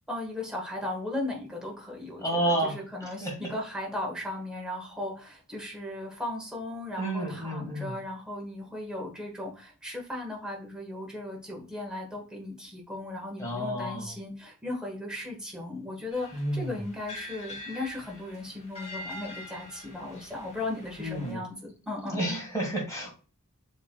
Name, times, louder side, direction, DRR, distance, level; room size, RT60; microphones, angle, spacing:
voice 1, 0.1-22.2, left 2 dB, 5° right, -1 dB, 1.3 m, -37 dB
voice 2, 2.2-2.7 3.2-3.3 7.0-8.0 13.4-14.1 16.3-16.8 21.0-21.4 22.1-23.1, right 1 dB, 15° left, 0 dB, 1.6 m, -30 dB
sound 1, 16.1-21.3, left 1 dB, 30° left, 1.3 m, -44 dB
6.8 x 3.1 x 2.2 m, 0.34 s
head